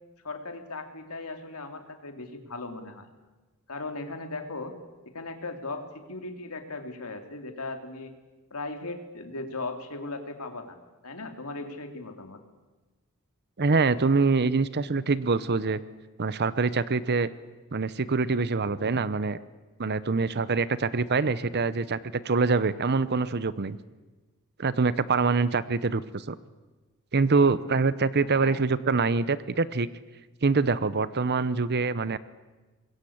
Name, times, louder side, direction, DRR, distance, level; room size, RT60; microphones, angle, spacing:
voice 1, 0.2-3.1 3.7-4.7 5.0-8.1 8.5-10.8 11.0-12.4 28.2-28.6, left 3 dB, 80° left, 6 dB, 2.9 m, -38 dB
voice 2, 13.6-15.8 16.2-17.3 17.7-19.4 19.8-23.8 24.6-26.4 27.1-29.9 30.4-32.2, right 4 dB, 50° right, 16 dB, 0.8 m, -25 dB
24.5 x 21.5 x 8.7 m, 1.2 s
head